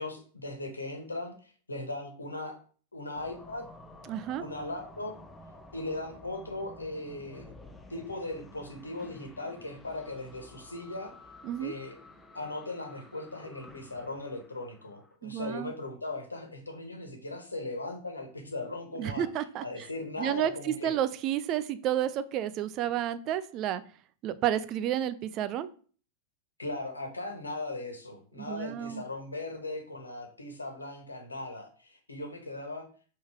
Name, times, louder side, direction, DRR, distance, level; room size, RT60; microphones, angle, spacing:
voice 1, 0.0-2.5 2.9-3.6 4.3-5.2 5.7-7.5 7.9-11.1 11.6-12.0 12.3-19.3 19.6-21.0 26.6-32.8, left 2 dB, 80° left, 4 dB, 1.4 m, -38 dB
sound 1, 3.2-15.1, left 1 dB, 10° left, 0.8 m, -52 dB
voice 2, 4.1-4.4 11.4-11.7 15.2-15.7 19.0-19.9 20.2-23.8 24.2-25.7 28.4-29.0, right 11 dB, 35° right, 13 dB, 0.5 m, -31 dB
5.2 x 3.8 x 5.0 m, 0.41 s
figure-of-eight pair, 90°, 0 cm